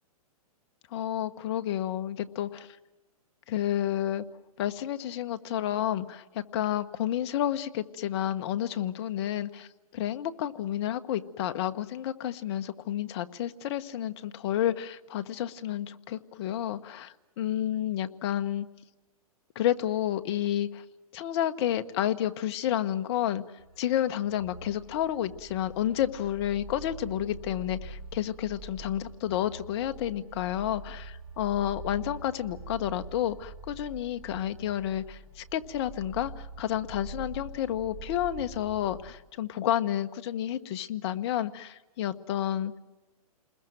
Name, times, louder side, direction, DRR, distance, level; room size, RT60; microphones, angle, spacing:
voice 1, 0.9-2.8 3.5-4.2 4.6-18.7 19.5-20.8 21.1-23.4 23.8-42.8, left 11 dB, 40° left, 10 dB, 1.2 m, -30 dB
sound 1, 23.6-39.2, right 3 dB, 15° right, 4.4 m, -45 dB
29.0 x 21.0 x 7.7 m, 1.1 s
hypercardioid pair, 145°, 19 cm